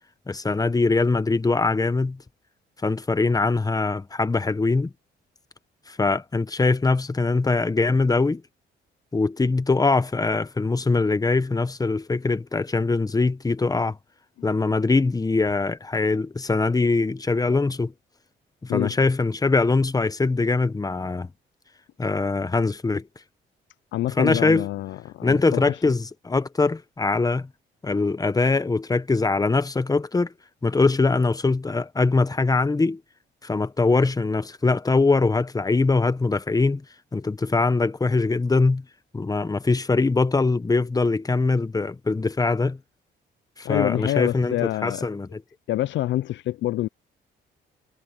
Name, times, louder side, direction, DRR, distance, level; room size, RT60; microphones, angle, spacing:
voice 1, 0.3-2.2 2.8-4.9 5.9-8.4 9.1-14.0 14.4-17.9 18.6-21.3 22.0-23.1 24.2-24.7 25.2-27.5 27.8-30.3 30.6-33.0 33.4-36.8 37.1-38.8 39.1-42.8 43.6-44.6 44.8-45.4, left 3 dB, 20° left, 1.1 m, -22 dB
voice 2, 23.9-25.8 43.6-45.1 45.7-46.9, left 14 dB, 70° left, 0.4 m, -26 dB
cardioid pair, 90°, 20 cm